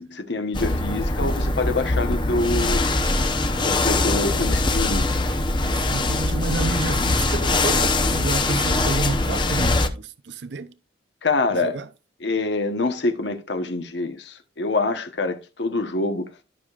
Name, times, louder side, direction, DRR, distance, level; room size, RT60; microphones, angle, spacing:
voice 1, 0.1-2.9 3.6-5.1 11.2-11.8 12.2-16.3, left 3 dB, 70° left, 1.1 m, -25 dB
sound 1, 0.5-9.9, left 2 dB, 25° left, 0.8 m, -22 dB
voice 2, 5.9-10.7 11.5-11.9, right 3 dB, 65° right, 0.6 m, -30 dB
13.0 x 6.6 x 2.5 m
head